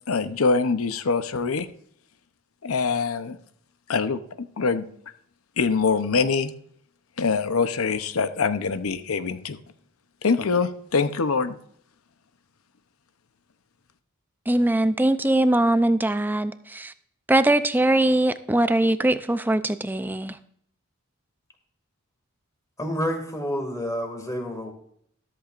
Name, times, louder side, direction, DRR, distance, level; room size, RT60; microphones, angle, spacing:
voice 1, 0.1-1.7 2.6-3.4 3.9-4.9 5.6-6.5 7.2-9.6 10.2-11.6, left 4 dB, 75° left, 11 dB, 0.7 m, -24 dB
voice 2, 14.5-16.9 17.3-20.4, right 1 dB, 10° right, 12 dB, 0.5 m, -21 dB
voice 3, 22.8-24.7, equal, 15° left, 4 dB, 2.3 m, -29 dB
13.5 x 13.5 x 2.5 m, 0.66 s
head